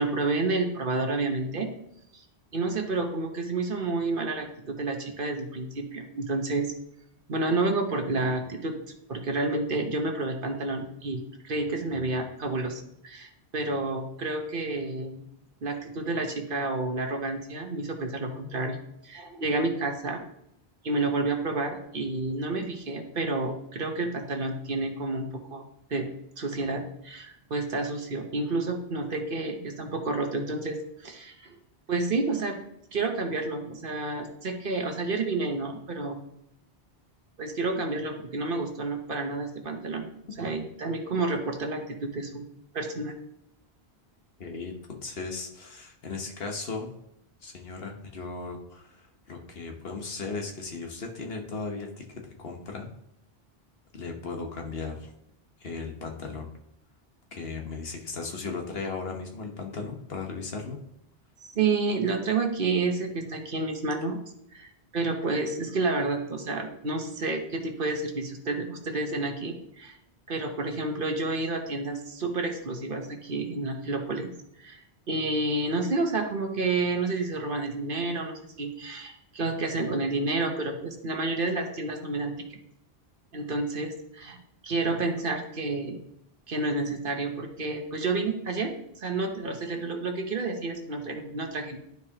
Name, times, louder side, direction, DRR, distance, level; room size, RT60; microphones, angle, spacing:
voice 1, 0.0-1.7 2.1-2.2 2.5-6.7 7.3-8.8 9.1-15.2 15.6-18.8 19.0-20.2 20.8-25.6 25.9-26.1 26.4-31.5 31.9-32.6 32.9-36.2 37.4-40.1 40.4-42.4 42.7-43.1 61.5-64.2 64.5-70.0 70.3-74.3 74.6-74.8 75.1-82.6 83.3-84.4 84.6-86.0 86.5-91.8, right 3 dB, 55° right, 4 dB, 1.1 m, -30 dB
voice 2, 44.4-46.9 47.4-52.1 52.4-52.9 53.9-55.1 55.6-56.5 57.3-60.8, left 4 dB, 65° left, 2 dB, 1.3 m, -36 dB
11.5 x 4.7 x 2.9 m, 0.77 s
omnidirectional pair, 1.1 m